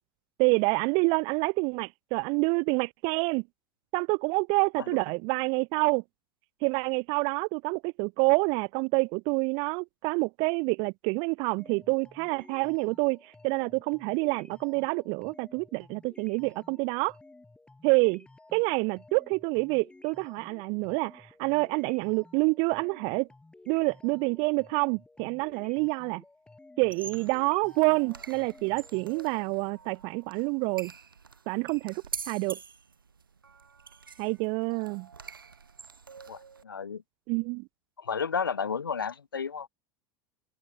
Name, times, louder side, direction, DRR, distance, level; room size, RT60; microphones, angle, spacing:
voice 1, 0.4-3.4 3.9-6.0 6.6-17.1 17.8-18.2 18.5-23.3 23.7-26.2 26.8-30.9 31.5-32.6 34.2-35.1 37.3-37.7, right 32 dB, 45° right, 0.7 m, -27 dB
sound 1, 11.6-29.1, left 2 dB, 10° left, 7.6 m, -54 dB
sound 2, 26.8-36.6, right 5 dB, 80° right, 0.8 m, -45 dB
voice 2, 36.3-37.0 38.0-39.7, left 6 dB, 75° left, 1.1 m, -32 dB
open air
figure-of-eight pair, 80°, 11 cm